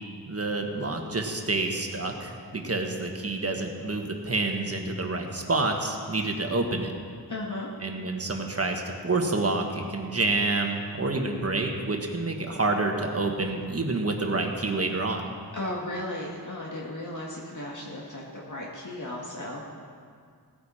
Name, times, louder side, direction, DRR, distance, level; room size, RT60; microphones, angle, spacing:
voice 1, 0.3-6.9 7.8-15.3, right 2 dB, 40° right, 3 dB, 1.4 m, -28 dB
voice 2, 7.3-7.7 15.5-19.6, left 1 dB, 50° left, -3 dB, 1.6 m, -35 dB
17.0 x 9.6 x 4.3 m, 2.1 s
wide cardioid pair, 100°, 38 cm